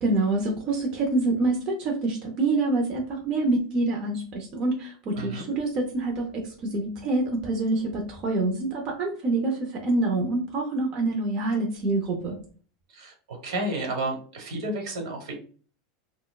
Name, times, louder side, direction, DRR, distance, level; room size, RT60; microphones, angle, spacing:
voice 1, 0.0-12.4, right 2 dB, 30° right, 0 dB, 0.5 m, -26 dB
voice 2, 5.2-5.5 12.9-15.3, right 2 dB, 65° right, 3 dB, 1.0 m, -31 dB
4.2 x 2.1 x 2.3 m, 0.42 s
supercardioid pair, 170°, 3 cm